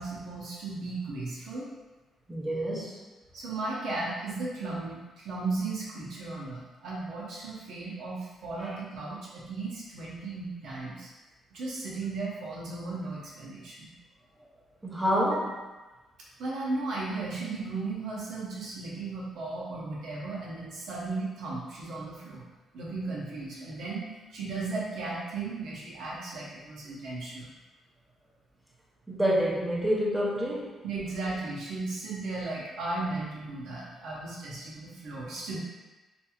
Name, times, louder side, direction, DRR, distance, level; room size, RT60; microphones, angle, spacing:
voice 1, 0.0-1.7 3.3-11.1 11.5-13.9 16.4-22.4 22.7-24.0 24.3-27.5 30.8-35.6, right 3 dB, 75° right, -5 dB, 0.8 m, -35 dB
voice 2, 2.3-3.0 8.6-8.8 14.8-15.6 29.1-30.8, equal, 10° right, -5 dB, 0.7 m, -28 dB
2.9 x 2.6 x 2.3 m, 1.2 s
cardioid pair, 90°, 0 cm